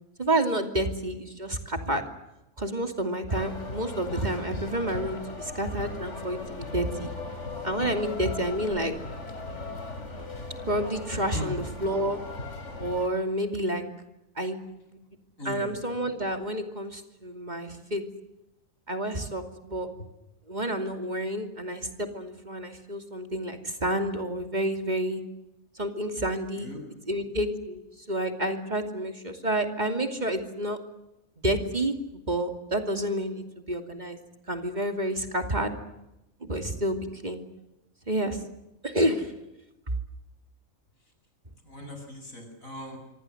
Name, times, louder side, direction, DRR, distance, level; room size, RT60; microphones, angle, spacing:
voice 1, 0.2-2.0 2.6-7.1 7.6-8.9 10.7-12.2 12.8-13.8 14.4-14.6 14.9-15.0 15.4-18.0 18.9-19.9 20.5-25.2 25.7-26.7 27.1-30.8 31.4-34.2 34.5-35.8 36.4-37.4 38.1-38.4 38.8-39.3, right 1 dB, 35° right, 6 dB, 2.8 m, -29 dB
sound 1, 3.3-13.1, left 2 dB, 60° left, 3.6 m, -38 dB
voice 2, 15.4-15.7 26.6-26.8 41.6-43.0, left 1 dB, 80° left, 4 dB, 8.0 m, -38 dB
26.0 x 25.5 x 7.9 m, 0.92 s
omnidirectional pair, 1.4 m